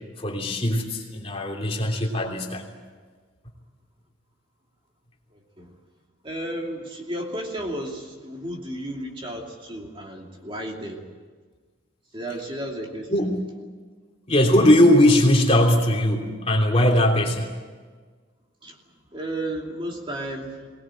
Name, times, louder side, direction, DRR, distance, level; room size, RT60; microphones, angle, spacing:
voice 1, 0.2-2.7 12.3-12.5 13.1-13.4 14.3-17.5, left 1 dB, 30° left, 1 dB, 3.1 m, -20 dB
voice 2, 5.3-5.7 6.2-11.0 12.1-13.3 18.6-18.8 19.1-20.7, right 1 dB, 25° right, 1 dB, 2.6 m, -33 dB
23.0 x 19.5 x 9.1 m, 1.5 s
head